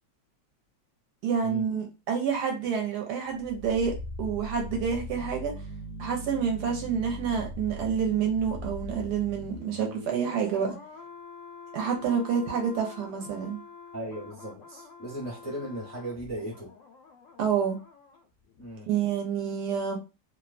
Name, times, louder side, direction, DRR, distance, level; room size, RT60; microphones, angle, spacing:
voice 1, 1.2-5.5 6.0-10.8 11.7-13.6 17.4-17.8 18.9-20.0, right 7 dB, 70° right, 1.1 m, -28 dB
sound 1, 3.2-18.2 18.5-18.7, left 1 dB, 70° left, 0.7 m, -42 dB
voice 2, 13.9-16.7 18.6-18.9, right 1 dB, 25° left, 0.3 m, -37 dB
2.9 x 2.1 x 2.4 m
omnidirectional pair, 2.0 m